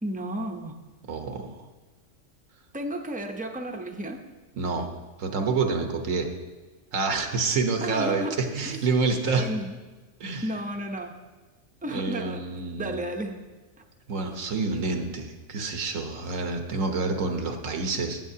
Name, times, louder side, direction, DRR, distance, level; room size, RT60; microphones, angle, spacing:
voice 1, 0.0-0.8 2.7-4.2 7.8-8.4 8.7-8.8 9.4-9.8 10.4-11.2 11.8-12.4 12.8-13.4, right 1 dB, 10° right, 3 dB, 0.5 m, -32 dB
voice 2, 1.1-1.6 4.5-4.9 5.2-6.3 6.9-9.5 10.2-10.5 11.9-13.0 14.1-18.2, right 4 dB, 85° right, 5 dB, 1.4 m, -28 dB
17.0 x 7.5 x 2.8 m, 1.2 s
omnidirectional pair, 1.3 m